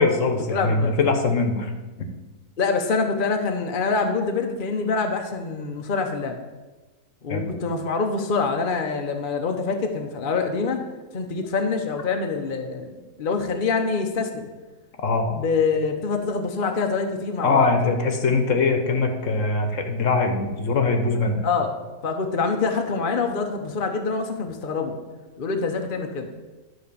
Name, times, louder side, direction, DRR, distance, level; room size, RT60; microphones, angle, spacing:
voice 1, 0.0-1.7 7.3-7.5 15.0-15.3 17.4-21.4, left 3 dB, 60° left, 5 dB, 1.3 m, -22 dB
voice 2, 0.5-1.1 2.6-6.4 7.2-10.8 11.1-14.5 15.4-17.7 21.4-24.9 25.4-26.3, left 4 dB, 45° left, 4 dB, 0.8 m, -25 dB
11.0 x 4.2 x 6.8 m, 1.2 s
omnidirectional pair, 1.6 m